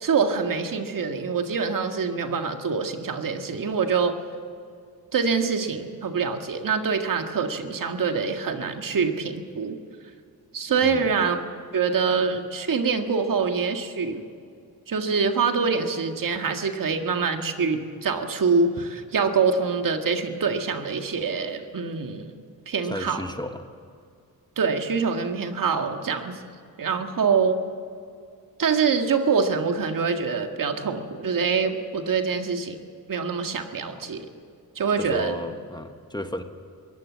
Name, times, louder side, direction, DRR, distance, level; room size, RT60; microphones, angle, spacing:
voice 1, 0.0-4.1 5.1-9.8 10.5-11.4 11.7-14.2 14.9-22.3 22.7-23.2 24.6-26.4 26.8-27.6 28.6-32.8 33.1-34.3 34.8-35.4, right 5 dB, 60° right, 5 dB, 1.9 m, -25 dB
voice 2, 22.8-23.7 33.9-34.0 35.0-36.4, left 1 dB, 10° left, 7 dB, 1.3 m, -34 dB
22.0 x 17.5 x 7.4 m, 2.3 s
cardioid pair, 95°, 37 cm